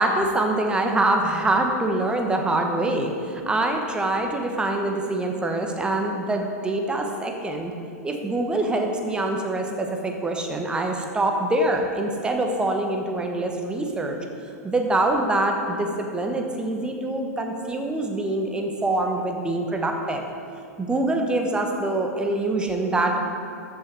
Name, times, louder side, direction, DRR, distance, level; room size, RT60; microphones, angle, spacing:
voice 1, 0.0-7.7 8.0-14.2 14.6-20.3 20.8-23.3, right 2 dB, 10° right, 3 dB, 1.2 m, -24 dB
13.5 x 6.6 x 4.7 m, 2.5 s
figure-of-eight pair, 95°, 9 cm